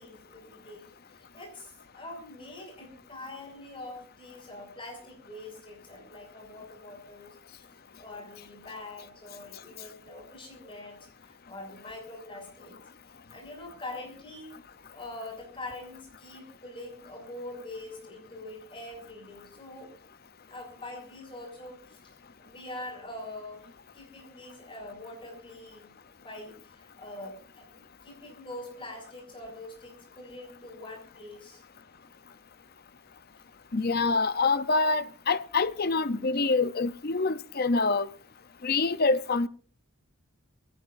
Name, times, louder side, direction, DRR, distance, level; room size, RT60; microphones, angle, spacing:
voice 1, 0.0-7.4 8.0-12.8 13.3-14.6 14.9-19.9 20.5-23.7 23.9-31.6, left 2 dB, 25° left, 6.1 m, -44 dB
voice 2, 33.7-38.1 38.6-39.5, left 3 dB, 40° left, 0.6 m, -26 dB
23.5 x 16.5 x 2.6 m
head